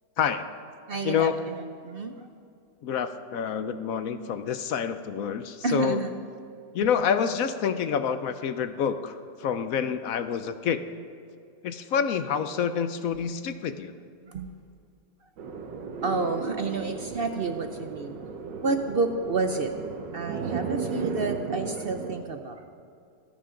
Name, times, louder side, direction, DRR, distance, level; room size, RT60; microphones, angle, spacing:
voice 1, 0.2-0.5 1.0-1.5 2.8-6.0 6.7-10.8 11.6-14.0, left 7 dB, 65° left, 10 dB, 0.9 m, -28 dB
voice 2, 0.9-2.3 5.6-6.1 14.2-14.5 16.0-18.2 18.6-19.7 20.1-22.6, right 3 dB, 60° right, 6 dB, 0.6 m, -30 dB
sound 1, 15.4-22.2, right 5 dB, 80° right, 1.7 m, -35 dB
25.5 x 10.5 x 3.8 m, 2.3 s
omnidirectional pair, 1.9 m